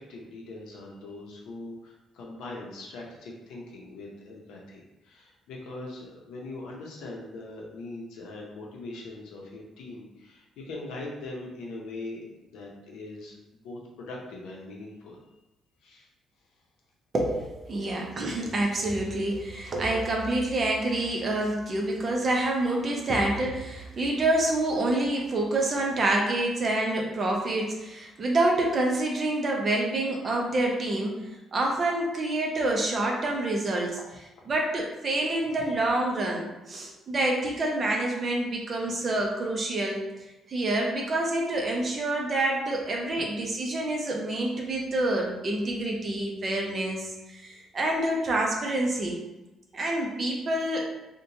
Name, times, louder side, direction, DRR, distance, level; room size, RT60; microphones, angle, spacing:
voice 1, 0.0-15.2 15.8-16.1 17.8-18.0, left 2 dB, 90° left, -2 dB, 0.6 m, -41 dB
voice 2, 17.1-34.0 34.5-40.0 40.5-49.2 49.7-50.8, right 2 dB, 35° right, 0 dB, 0.5 m, -27 dB
2.9 x 2.1 x 2.6 m, 0.99 s
cardioid pair, 145°, 0 cm